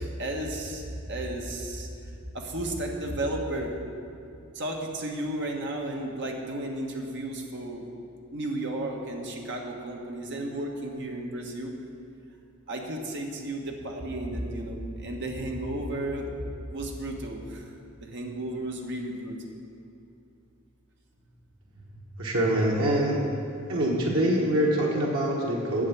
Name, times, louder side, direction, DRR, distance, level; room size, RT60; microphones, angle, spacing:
voice 1, 0.0-1.9 2.3-3.7 4.5-7.8 8.3-11.7 12.7-16.3 16.7-17.6 18.0-19.4, right 1 dB, 60° right, 1 dB, 1.3 m, -33 dB
voice 2, 22.2-23.3 23.7-25.9, right 1 dB, 90° right, -3 dB, 1.3 m, -24 dB
8.8 x 7.3 x 7.2 m, 2.6 s
head